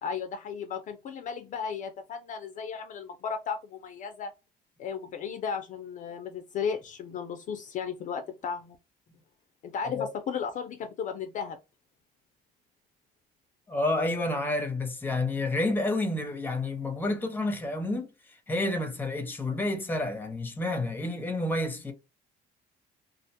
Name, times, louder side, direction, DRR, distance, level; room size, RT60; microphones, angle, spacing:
voice 1, 0.0-4.3 4.8-8.8 9.6-11.6, left 6 dB, 50° left, 0.4 m, -35 dB
voice 2, 13.7-18.1 18.5-21.9, left 2 dB, 10° left, 0.6 m, -29 dB
2.4 x 2.1 x 2.7 m
cardioid pair, 110°, 17 cm